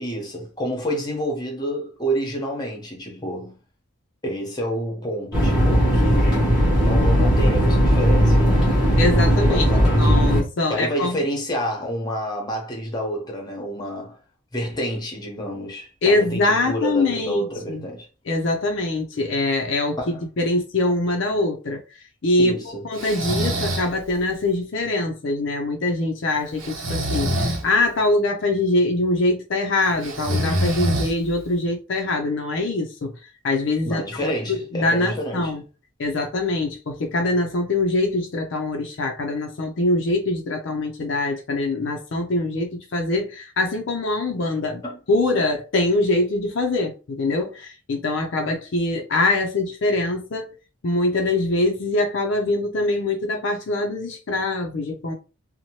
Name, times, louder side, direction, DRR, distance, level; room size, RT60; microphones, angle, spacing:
voice 1, 0.0-3.6 4.2-6.4 6.7-8.7 9.5-10.2 10.7-14.2 14.5-18.1 20.0-20.2 22.4-22.8 33.8-35.5 44.8-45.0, equal, 20° left, 0.8 m, -29 dB
sound 1, 5.3-10.4, equal, 5° right, 1.0 m, -17 dB
voice 2, 9.0-9.6 10.0-11.2 16.0-17.8 18.3-20.0 20.4-21.8 22.2-33.1 33.4-35.6 36.0-50.5 50.8-55.1, left 2 dB, 60° left, 0.5 m, -23 dB
Breathing, 23.0-23.9 26.6-27.6 30.0-31.4, equal, 75° right, 0.7 m, -25 dB
2.7 x 2.1 x 2.9 m
head